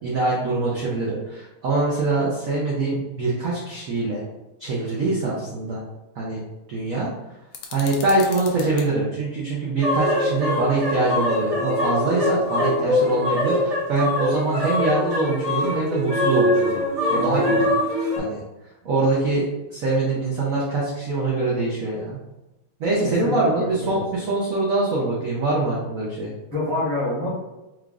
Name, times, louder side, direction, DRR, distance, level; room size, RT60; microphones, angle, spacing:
voice 1, 0.0-4.2 4.6-5.8 6.2-6.4 6.7-7.1 7.7-16.8 17.1-17.6 18.2-18.4 18.8-22.2 22.8-26.3, right 2 dB, 65° right, -5 dB, 0.8 m, -24 dB
sound 1, 7.5-8.9, left 6 dB, 85° left, 1.4 m, -38 dB
sound 2, 9.8-18.2, left 1 dB, 85° right, 0.3 m, -23 dB
voice 2, 23.0-24.0 26.5-27.3, left 2 dB, 15° left, -10 dB, 0.8 m, -27 dB
4.8 x 2.4 x 2.4 m, 1.0 s
omnidirectional pair, 2.3 m